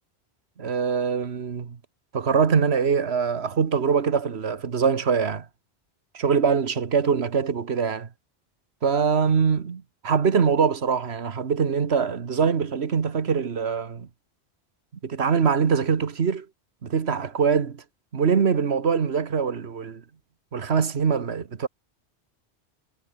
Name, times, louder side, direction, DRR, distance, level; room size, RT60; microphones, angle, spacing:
voice 1, 0.6-1.8 2.1-5.5 6.1-8.1 8.8-14.1 15.0-16.5 16.8-17.8 18.1-20.0 20.5-21.7, right 6 dB, 70° right, 1.6 m, -23 dB
omnidirectional pair, 1.1 m